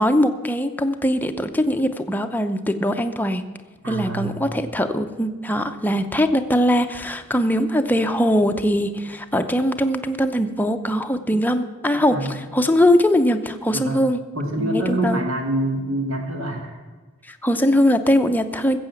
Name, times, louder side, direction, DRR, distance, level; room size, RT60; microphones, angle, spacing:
voice 1, 0.0-3.4 3.9-14.2 14.6-15.2 17.3-18.8, equal, 10° left, 7 dB, 0.7 m, -21 dB
voice 2, 3.8-4.4 12.1-12.4 13.7-14.0 14.3-16.8, right 1 dB, 70° right, 1 dB, 2.3 m, -25 dB
15.0 x 7.7 x 7.1 m, 1.3 s
head